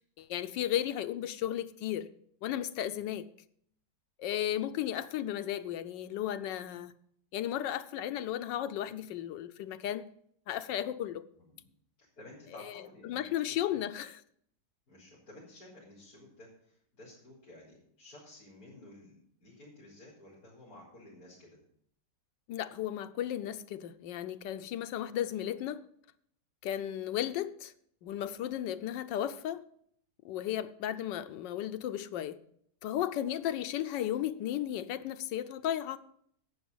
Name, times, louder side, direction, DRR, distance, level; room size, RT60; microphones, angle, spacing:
voice 1, 0.2-2.1 2.4-3.3 4.2-6.9 7.3-10.0 10.5-11.2 12.7-14.2 22.5-25.8 26.6-27.7 28.0-29.6 30.2-32.4 32.8-36.0, left 11 dB, 80° left, 1.3 m, -34 dB
voice 2, 11.4-11.7 12.0-13.8 14.9-21.6, left 1 dB, 50° left, 4.4 m, -54 dB
11.5 x 8.5 x 5.5 m
omnidirectional pair, 1.9 m